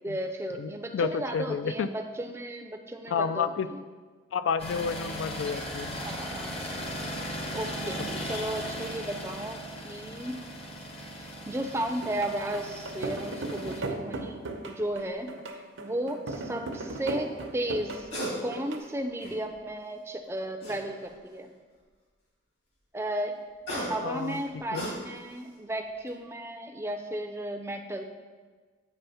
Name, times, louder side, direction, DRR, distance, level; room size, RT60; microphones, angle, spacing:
voice 1, 0.0-3.8 6.0-6.7 7.5-9.6 9.8-10.4 11.2-15.3 15.8-18.1 18.4-21.5 22.9-23.4 23.8-28.0, right 1 dB, 15° right, 5 dB, 0.4 m, -34 dB
voice 2, 0.6-1.9 3.1-3.7 4.3-6.0 24.0-24.4 24.7-24.9, left 6 dB, 75° left, 12 dB, 0.3 m, -30 dB
sound 1, 4.6-13.8, equal, 30° left, 0.7 m, -37 dB
sound 2, 12.0-18.8, right 2 dB, 85° right, 0.7 m, -37 dB
sound 3, 14.9-15.1 17.8-18.4 18.8-19.6 20.6-21.3 23.3-25.4 25.8-26.1, equal, 55° left, 1.9 m, -37 dB
8.2 x 3.4 x 5.5 m, 1.5 s
head